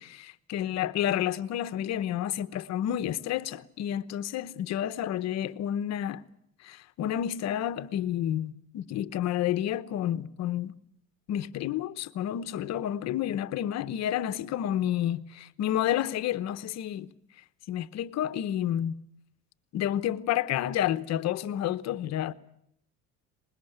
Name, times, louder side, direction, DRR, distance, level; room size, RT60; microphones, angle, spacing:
voice 1, 0.0-6.2 6.6-10.7 11.3-17.1 17.7-19.0 19.7-22.3, left 11 dB, 60° left, 1.1 m, -30 dB
24.5 x 21.5 x 8.0 m
cardioid pair, 120°, 31 cm